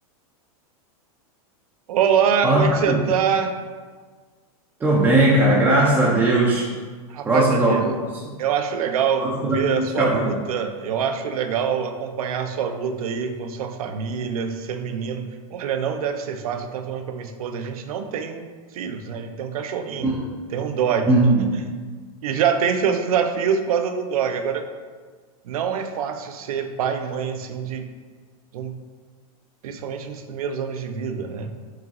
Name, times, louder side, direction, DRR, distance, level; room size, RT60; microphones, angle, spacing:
voice 1, 1.9-3.5 7.1-7.9 8.4-18.5 18.7-20.1 20.5-21.6 22.2-24.6 25.4-27.9 28.5-28.8 29.6-31.5, right 7 dB, 75° right, 7 dB, 0.5 m, -25 dB
voice 2, 2.4-3.0 4.8-6.7 7.3-7.9 9.2-10.4 20.0-20.2 21.1-21.5, right 2 dB, 10° right, -4 dB, 0.3 m, -19 dB
4.7 x 3.0 x 2.8 m, 1.5 s
supercardioid pair, 140°, 19 cm